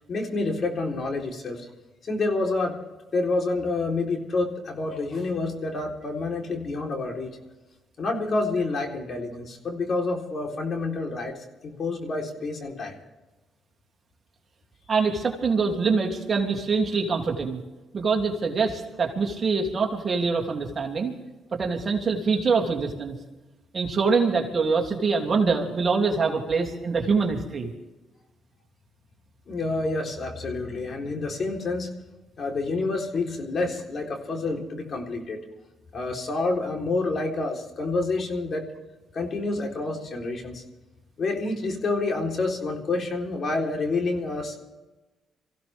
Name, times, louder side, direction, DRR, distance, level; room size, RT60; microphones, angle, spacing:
voice 1, 0.0-1.7 2.0-2.8 3.1-7.3 8.0-11.3 11.6-12.9 29.5-31.9 32.4-35.4 35.9-38.7 39.1-40.6 41.2-44.6, left 3 dB, 50° left, 1 dB, 3.9 m, -28 dB
voice 2, 14.9-17.6 17.9-21.1 21.5-23.2 23.7-27.7, right 4 dB, 40° right, 1 dB, 3.0 m, -24 dB
24.5 x 16.0 x 3.6 m, 1.1 s
cardioid pair, 90°, 0 cm